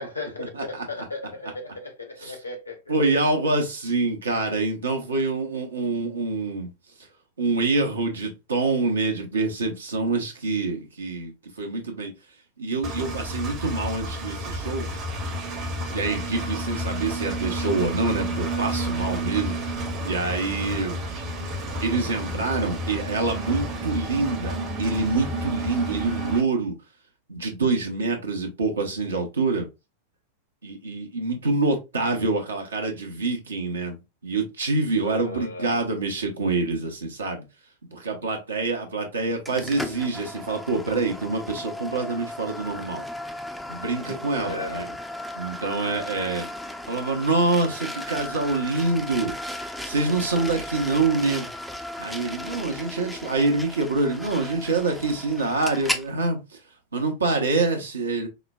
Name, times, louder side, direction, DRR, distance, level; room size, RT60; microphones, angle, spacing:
voice 1, 0.0-2.9 35.0-35.8 44.4-45.0, left 2 dB, 80° left, 0.9 m, -36 dB
voice 2, 0.5-0.8 2.2-2.3 2.9-6.7 7.4-11.3 11.6-12.1 12.6-14.9 15.9-19.8 20.0-21.0 21.8-26.7 27.3-29.7 30.6-34.0 34.2-37.4 37.8-43.1 43.7-44.9 45.4-46.4 46.9-49.3 49.8-51.5 52.0-56.4 56.9-58.3, right 3 dB, 70° right, 0.8 m, -26 dB
Engine, 12.8-26.4, right 1 dB, 35° right, 0.9 m, -30 dB
sound 1, 39.5-56.1, left 1 dB, ahead, 0.4 m, -35 dB
4.8 x 2.1 x 2.3 m
figure-of-eight pair, 90°, 0 cm